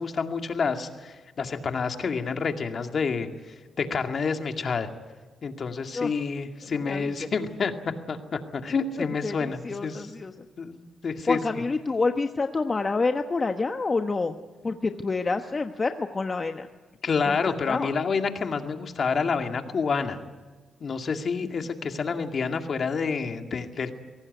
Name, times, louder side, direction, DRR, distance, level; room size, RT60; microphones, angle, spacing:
voice 1, 0.0-3.3 3.8-4.9 5.4-7.7 8.1-10.0 10.6-11.4 17.0-20.2 20.8-23.9, left 5 dB, 55° left, 6 dB, 2.2 m, -28 dB
voice 2, 6.8-7.3 9.2-10.5 11.3-14.4 14.6-16.7 17.3-17.9, left 3 dB, 35° left, 6 dB, 1.2 m, -28 dB
24.0 x 17.5 x 9.4 m, 1.3 s
cardioid pair, 80°, 0 cm